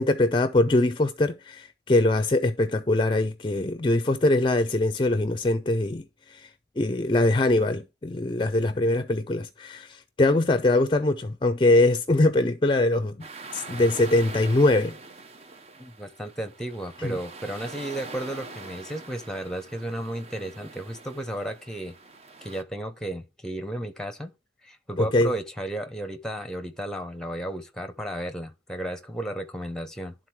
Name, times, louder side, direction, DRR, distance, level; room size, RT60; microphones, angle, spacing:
voice 1, 0.0-6.0 6.3-6.5 6.8-13.2 13.5-15.0 17.0-17.2 25.0-25.3, left 2 dB, 30° left, 0.4 m, -22 dB
sound 1, 13.2-22.6, right 3 dB, 35° right, 0.7 m, -43 dB
voice 2, 15.8-21.9 22.4-24.3 24.6-30.1, right 1 dB, 5° left, 0.8 m, -34 dB
11.5 x 3.9 x 4.5 m
head